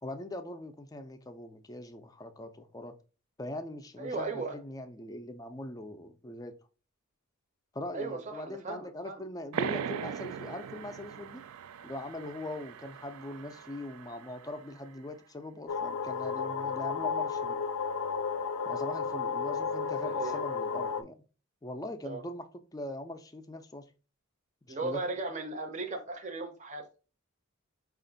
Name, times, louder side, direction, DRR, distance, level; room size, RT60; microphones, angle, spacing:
voice 1, 0.0-2.9 3.4-6.5 7.7-11.4 11.8-17.6 18.7-21.1 21.6-22.5 22.7-23.8 24.7-25.0, left 1 dB, 15° left, 0.4 m, -41 dB
voice 2, 4.0-4.6 7.9-9.2 20.1-20.4 22.0-22.2 24.7-27.0, right 3 dB, 35° right, 0.6 m, -36 dB
sound 1, 9.5-14.8, right 7 dB, 85° right, 0.3 m, -40 dB
sound 2, 15.7-21.0, left 5 dB, 75° left, 0.4 m, -33 dB
5.1 x 2.5 x 3.9 m
head